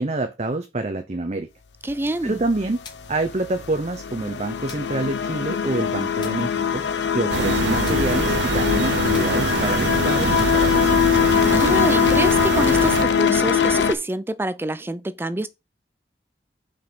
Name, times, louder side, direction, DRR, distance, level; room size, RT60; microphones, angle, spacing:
voice 1, 0.0-1.5 2.2-2.8 3.1-6.8 7.1-11.2, right 2 dB, 40° right, 0.8 m, -27 dB
voice 2, 1.8-2.4 11.5-15.5, right 1 dB, 15° right, 0.4 m, -26 dB
sound 1, 1.9-13.9, left 8 dB, 80° left, 0.7 m, -22 dB
sound 2, 2.8-3.3 4.7-5.0 6.2-6.6 7.8-8.2 9.1-9.5 10.4-10.8 11.6-11.9, left 4 dB, 25° left, 1.5 m, -44 dB
sound 3, 7.3-13.0, right 5 dB, 80° right, 0.6 m, -24 dB
5.5 x 5.2 x 5.9 m
head